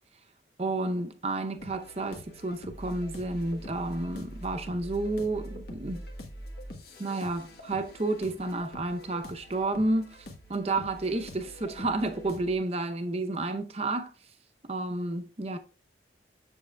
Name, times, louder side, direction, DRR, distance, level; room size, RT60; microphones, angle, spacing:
voice 1, 0.6-6.1 7.0-10.1 10.5-14.1 14.7-15.6, right 2 dB, 35° right, 0.6 m, -31 dB
sound 1, 1.6-12.6, equal, 55° left, 1.2 m, -44 dB
7.4 x 7.1 x 2.3 m
head